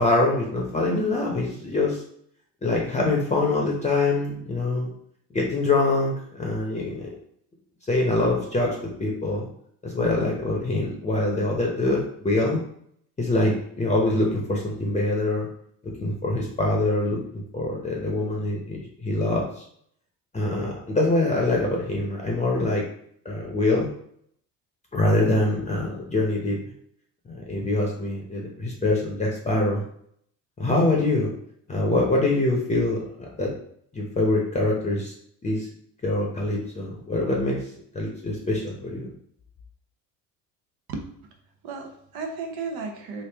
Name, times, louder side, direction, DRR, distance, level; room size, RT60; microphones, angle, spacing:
voice 1, 0.0-2.0 2.6-4.9 5.3-7.1 7.9-9.5 9.8-12.6 13.2-15.5 16.0-19.6 20.3-22.8 23.2-23.9 24.9-26.6 27.3-29.8 30.6-31.3 31.7-33.0 33.4-33.5 33.9-35.1 35.4-35.7 36.0-37.7 37.9-39.1, left 2 dB, 20° left, -1 dB, 0.7 m, -24 dB
voice 2, 40.9-41.3 41.6-43.2, right 4 dB, 75° right, 4 dB, 0.9 m, -34 dB
3.3 x 2.5 x 3.4 m, 0.68 s
supercardioid pair, 95°, 37 cm